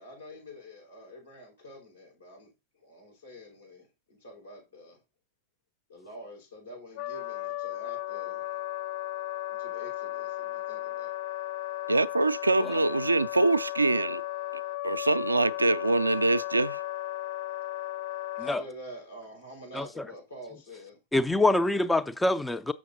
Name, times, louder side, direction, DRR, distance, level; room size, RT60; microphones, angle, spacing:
voice 1, 0.0-5.0 5.9-8.6 9.5-11.1 18.3-21.0, equal, 80° left, 5.2 m, -47 dB
Wind instrument woodwind instrument, 7.0-18.6, left 15 dB, 55° left, 0.6 m, -35 dB
voice 2, 11.9-14.2 14.8-16.8, right 2 dB, 80° right, 0.4 m, -24 dB
voice 3, 21.1-22.7, left 2 dB, 5° left, 0.3 m, -25 dB
6.9 x 6.2 x 4.0 m
figure-of-eight pair, 90°, 0 cm